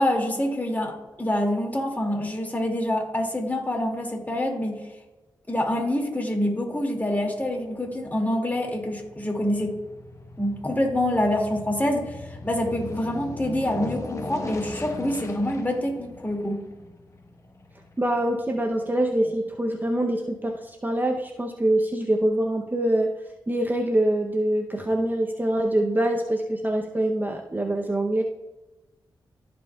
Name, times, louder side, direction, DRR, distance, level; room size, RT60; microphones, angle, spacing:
voice 1, 0.0-4.8 5.5-9.8 10.4-16.6, left 1 dB, 20° left, 0 dB, 2.2 m, -26 dB
Aircraft, 7.0-19.5 19.9-20.0, left 2 dB, 40° left, 1.1 m, -40 dB
voice 2, 18.0-23.1 23.5-28.2, right 1 dB, 20° right, 3 dB, 0.7 m, -24 dB
15.0 x 5.2 x 2.3 m, 1.1 s
cardioid pair, 55°, 8 cm